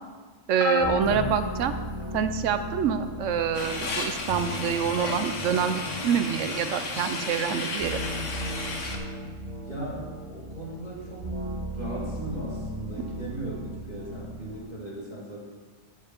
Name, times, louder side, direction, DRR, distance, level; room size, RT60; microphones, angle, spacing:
voice 1, 0.5-1.7 2.1-8.0, right 7 dB, 85° right, 10 dB, 1.0 m, -26 dB
sound 1, 0.6-2.4 3.1-3.4 4.7-4.8, left 8 dB, 60° left, 0.3 m, -33 dB
sound 2, 0.8-14.6, right 1 dB, 35° right, 1.2 m, -37 dB
sound 3, 3.5-9.0, left 3 dB, 80° left, 1.6 m, -33 dB
voice 2, 9.6-11.3 11.7-15.5, right 1 dB, 35° left, -6 dB, 2.9 m, -38 dB
14.0 x 5.0 x 5.8 m, 1.4 s
omnidirectional pair, 1.2 m